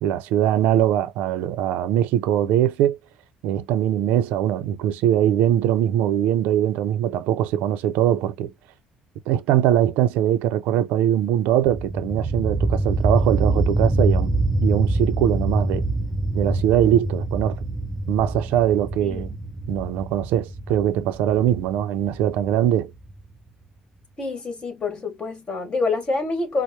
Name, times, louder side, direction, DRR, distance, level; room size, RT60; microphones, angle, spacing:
voice 1, 0.0-3.0 3.4-8.5 9.3-14.3 14.6-15.9 16.3-17.6 18.1-19.3 19.7-22.9, right 11 dB, 85° right, 0.5 m, -21 dB
sound 1, 11.6-23.2, right 2 dB, 10° right, 0.5 m, -25 dB
voice 2, 19.0-19.4 24.2-26.6, left 3 dB, 35° left, 1.7 m, -27 dB
4.5 x 2.0 x 2.7 m
cardioid pair, 95°, 3 cm